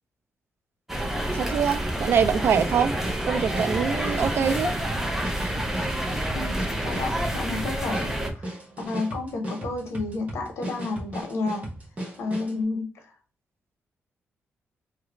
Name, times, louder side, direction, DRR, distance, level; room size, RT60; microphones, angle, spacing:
sound 1, 0.9-8.3, right 1 dB, 5° right, 0.6 m, -28 dB
voice 1, 1.3-2.9 3.3-4.7, right 7 dB, 60° right, 0.3 m, -24 dB
sound 2, 1.9-12.6, right 1 dB, 30° right, 1.2 m, -36 dB
voice 2, 6.3-8.1 8.3-11.6 12.2-12.8, left 3 dB, 75° left, 1.0 m, -31 dB
2.9 x 2.5 x 3.0 m
cardioid pair, 120°, 5 cm